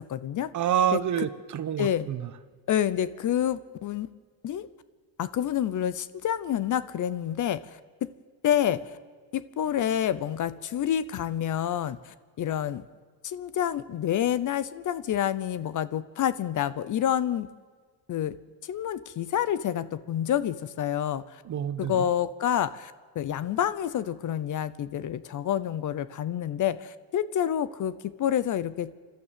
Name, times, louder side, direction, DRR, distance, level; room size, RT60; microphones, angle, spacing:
voice 1, 0.0-0.5 0.9-1.3 1.8-2.1 2.7-4.1 4.4-4.7 5.2-7.8 8.4-8.8 9.3-12.8 13.2-17.5 18.1-18.4 18.6-21.4 21.8-28.9, left 10 dB, 40° left, 16 dB, 0.8 m, -28 dB
voice 2, 0.5-2.2 21.5-21.9, right 9 dB, 40° right, 12 dB, 1.2 m, -27 dB
28.0 x 12.5 x 7.6 m, 1.5 s
cardioid pair, 120°, 45 cm